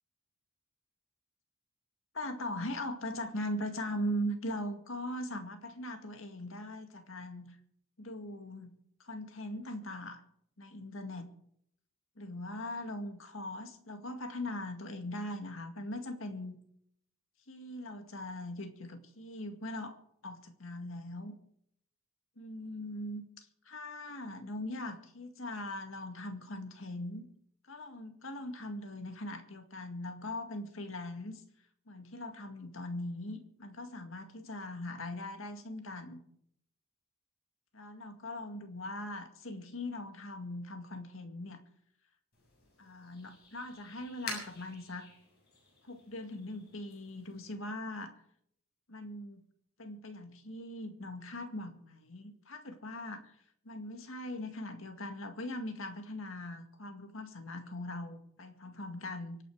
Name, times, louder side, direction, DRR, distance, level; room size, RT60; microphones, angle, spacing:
voice 1, 2.1-7.6 8.0-8.7 9.0-10.2 10.6-11.3 12.2-16.6 17.5-20.0 20.2-21.3 22.4-27.3 27.7-31.4 31.9-36.2 37.7-41.6 42.8-45.1 45.8-48.1 48.9-49.4 49.8-53.3 53.7-59.4, left 1 dB, 75° left, 6 dB, 2.1 m, -40 dB
sound 1, 42.3-47.5, left 3 dB, 55° left, 7.4 m, -49 dB
25.0 x 9.3 x 4.9 m, 0.69 s
head